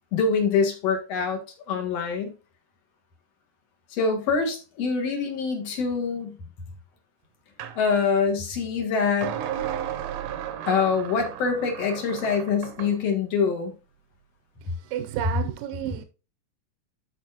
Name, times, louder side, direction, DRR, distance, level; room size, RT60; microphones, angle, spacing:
voice 1, 0.1-1.4 1.7-2.3 3.9-6.4 7.8-9.3 10.7-13.7, left 5 dB, 55° left, 2.4 m, -25 dB
sound 1, 7.6-7.8 9.2-13.0, right 10 dB, 70° right, 1.6 m, -34 dB
voice 2, 14.9-16.0, right 11 dB, 85° right, 2.4 m, -31 dB
13.0 x 4.7 x 2.8 m
omnidirectional pair, 3.9 m